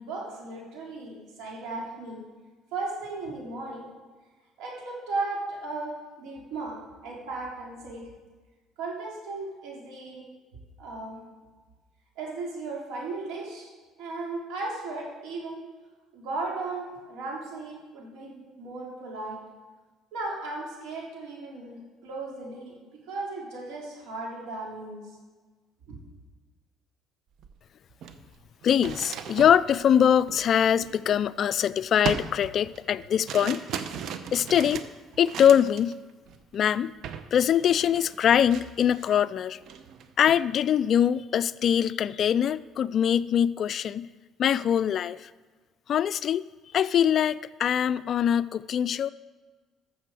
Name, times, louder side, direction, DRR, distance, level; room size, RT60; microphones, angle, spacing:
voice 1, 0.0-2.2 2.7-3.8 4.6-8.0 8.8-10.2 10.8-11.2 12.2-13.7 14.0-15.6 16.1-19.4 20.1-22.8 23.1-25.0 25.9-26.0, right 3 dB, 80° right, -3 dB, 3.4 m, -36 dB
sound 1, 27.4-27.5 27.9-31.5 32.0-35.9 36.3-36.6 37.0-37.3 37.5-39.2 39.6-40.4, right 7 dB, 65° right, 0.7 m, -38 dB
voice 2, 28.6-33.6 34.3-34.8 35.2-36.0 36.5-36.9 37.3-39.6 40.2-44.1 44.4-45.2 45.9-46.4 46.7-49.1, left 9 dB, 50° left, 17 dB, 0.3 m, -23 dB
13.5 x 6.8 x 4.8 m, 1.3 s
cardioid pair, 100°, 0 cm